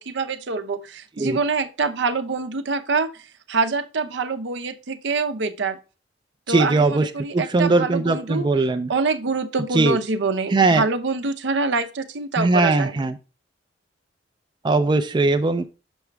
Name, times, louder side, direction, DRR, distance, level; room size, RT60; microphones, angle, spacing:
voice 1, 0.1-3.2 3.5-5.8 6.5-8.5 8.9-12.9, right 4 dB, 70° right, 0.7 m, -25 dB
voice 2, 6.5-8.9 9.7-10.0 10.5-10.8 12.4-13.2 14.6-15.7, right 3 dB, 25° right, 0.4 m, -20 dB
6.2 x 5.8 x 3.3 m
head